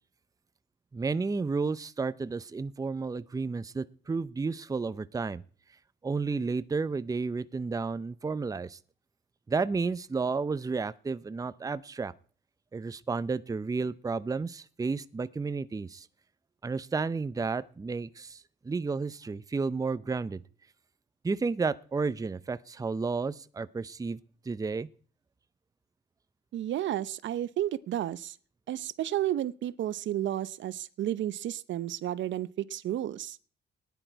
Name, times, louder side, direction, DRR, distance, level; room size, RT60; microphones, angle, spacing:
voice 1, 0.9-5.4 6.0-8.8 9.5-12.1 12.7-16.1 16.6-20.4 21.2-24.2 24.5-24.9, right 4 dB, 15° right, 15 dB, 0.6 m, -32 dB
voice 2, 26.5-28.4 28.7-33.4, right 12 dB, 70° right, 17 dB, 0.7 m, -32 dB
18.0 x 10.0 x 4.6 m, 0.43 s
cardioid pair, 90°, 20 cm